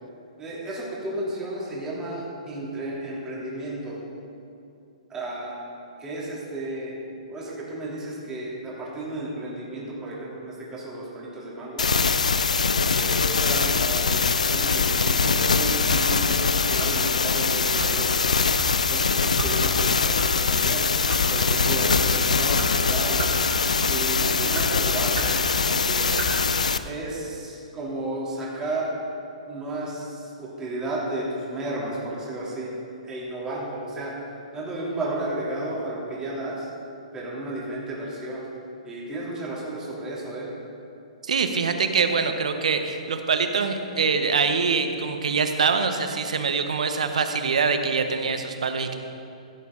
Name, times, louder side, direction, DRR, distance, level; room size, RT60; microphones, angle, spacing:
voice 1, 0.4-4.0 5.1-5.5 6.0-6.9 7.3-11.9 12.9-18.2 18.9-20.8 21.3-23.3 23.9-26.2 26.8-28.9 29.5-32.7 33.0-34.1 34.5-36.7 37.1-38.4 38.8-40.5, right 1 dB, 15° right, -6 dB, 2.9 m, -33 dB
sound 1, 11.8-26.8, left 5 dB, 90° left, 0.4 m, -22 dB
sound 2, 15.9-16.1 16.8-17.1 17.8-18.0 18.6-18.7 19.4-19.5 20.2-20.3 20.9-21.2 21.9-22.0 22.6-22.7 23.2-23.4 23.8-24.0 24.5-24.7 25.1-25.4 26.1-26.3, right 3 dB, 50° right, 2.5 m, -33 dB
voice 2, 41.2-49.0, right 5 dB, 75° right, 7 dB, 1.0 m, -24 dB
15.5 x 8.2 x 3.8 m, 2.7 s
hypercardioid pair, 130°, 4 cm